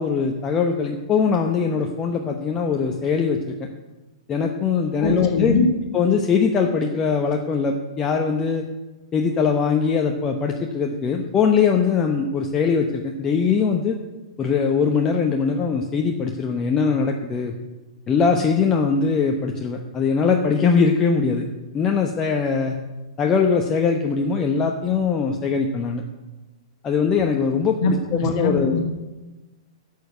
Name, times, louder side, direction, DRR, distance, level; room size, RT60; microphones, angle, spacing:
voice 1, 0.0-3.7 4.3-5.5 5.9-8.6 9.1-14.0 14.4-17.5 18.1-21.5 21.7-22.8 23.2-26.0 26.8-28.8, left 5 dB, 20° left, 2 dB, 1.0 m, -21 dB
voice 2, 5.0-5.7 27.8-28.8, left 3 dB, 45° left, 4 dB, 2.1 m, -22 dB
11.5 x 6.6 x 8.2 m, 1.1 s
figure-of-eight pair, 105°, 3 cm